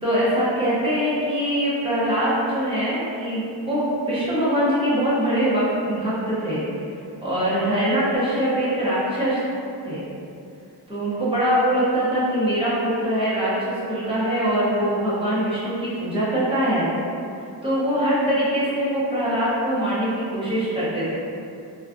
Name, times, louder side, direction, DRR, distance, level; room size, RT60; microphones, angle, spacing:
voice 1, 0.0-6.6 7.2-9.4 9.8-10.0 10.9-16.9 17.6-21.1, equal, 15° right, -10 dB, 0.6 m, -23 dB
2.5 x 2.2 x 2.4 m, 2.6 s
wide cardioid pair, 170°, 41 cm